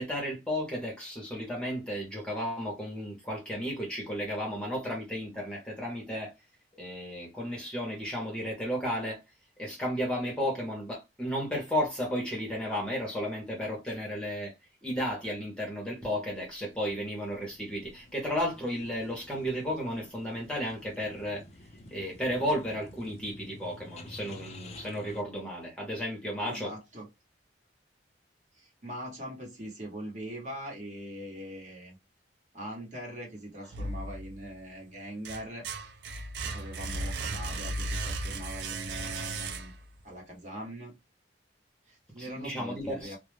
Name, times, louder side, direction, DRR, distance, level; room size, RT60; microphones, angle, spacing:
voice 1, 0.0-6.3 6.8-9.2 9.6-14.5 14.8-21.4 21.9-26.7 42.2-43.2, equal, 5° left, 0.7 m, -33 dB
sound 1, 16.4-25.2, left 1 dB, 35° left, 0.4 m, -50 dB
voice 2, 26.4-27.1 28.5-32.0 32.5-35.7 36.2-39.7 40.0-41.0 41.9-43.2, equal, 40° right, 1.0 m, -42 dB
sound 2, 33.7-34.6 35.0-40.0, right 2 dB, 65° right, 0.4 m, -35 dB
2.3 x 2.0 x 3.1 m
head